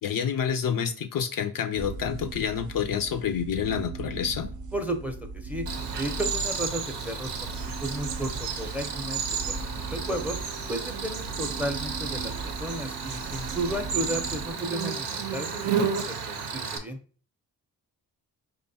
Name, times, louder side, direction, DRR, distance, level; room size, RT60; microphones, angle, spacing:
voice 1, 0.0-4.5, left 8 dB, 55° left, 7 dB, 0.5 m, -28 dB
sound 1, 1.8-14.5, right 3 dB, 45° right, 0.5 m, -38 dB
voice 2, 4.7-5.7 5.9-10.4 10.7-17.0, right 1 dB, 5° right, 6 dB, 0.6 m, -34 dB
Cricket, 5.7-16.8, right 6 dB, 85° right, 0.7 m, -32 dB
4.8 x 2.3 x 2.7 m, 0.41 s
cardioid pair, 55°, 41 cm